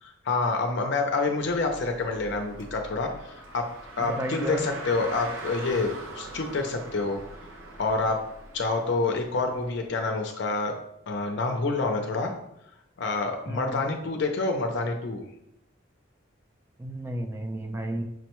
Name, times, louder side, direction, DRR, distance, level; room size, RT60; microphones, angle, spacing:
voice 1, 0.0-3.7 4.0-7.2 7.8-8.2 8.5-10.7 11.1-12.3 13.0-15.2, left 3 dB, 60° left, 3 dB, 0.5 m, -27 dB
Car, 1.3-9.9, right 2 dB, 75° right, 0.6 m, -43 dB
voice 2, 4.0-4.7 13.5-13.9 16.8-18.0, equal, 15° right, 5 dB, 0.3 m, -33 dB
6.1 x 2.1 x 2.9 m, 0.81 s
head